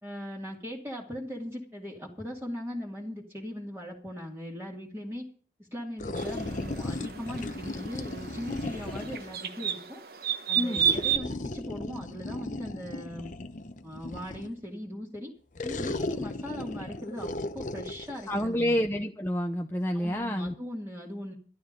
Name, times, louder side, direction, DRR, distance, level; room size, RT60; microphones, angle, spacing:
voice 1, 0.0-5.3 5.7-10.0 10.5-13.3 13.8-15.3 15.6-18.8 19.9-21.3, equal, 15° right, -2 dB, 2.1 m, -39 dB
sound 1, 6.0-9.4 10.8-14.6 15.6-18.5, left 2 dB, 45° left, 0.8 m, -36 dB
sound 2, 6.2-11.2, right 9 dB, 55° right, 1.2 m, -32 dB
voice 2, 18.3-20.6, equal, 15° left, 3 dB, 0.7 m, -28 dB
13.0 x 12.0 x 5.2 m, 0.43 s
head